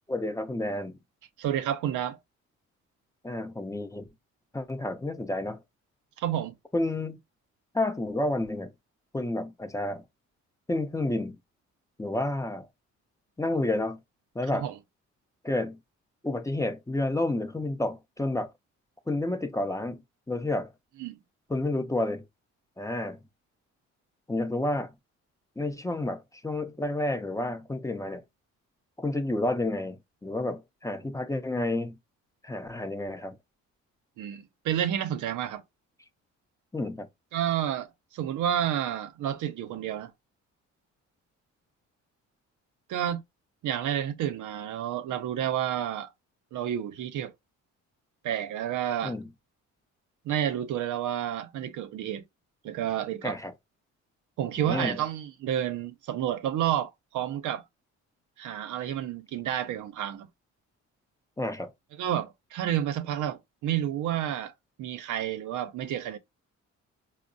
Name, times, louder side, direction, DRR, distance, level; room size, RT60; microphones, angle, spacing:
voice 1, 0.1-1.0 3.2-4.1 4.5-5.6 6.7-7.2 7.7-8.7 9.1-10.0 10.7-11.4 12.0-12.7 13.4-14.0 14.3-14.7 15.4-15.8 16.2-18.5 19.1-20.0 20.3-20.7 21.5-22.2 22.8-23.2 24.3-24.9 25.6-28.2 29.0-32.0 32.4-33.4 36.7-37.1 49.0-49.3 53.2-53.5 54.6-55.0 61.4-61.7, left 2 dB, 10° left, 0.5 m, -30 dB
voice 2, 1.4-2.2 6.2-6.5 14.5-14.7 21.0-21.2 34.2-35.6 37.3-40.1 42.9-43.2 43.6-46.1 46.5-47.3 48.2-49.2 50.2-52.2 52.6-53.4 54.4-57.6 58.4-60.3 62.0-64.5 64.8-66.2, right 10 dB, 80° right, 0.6 m, -30 dB
4.5 x 2.0 x 2.5 m
cardioid pair, 90°, 30 cm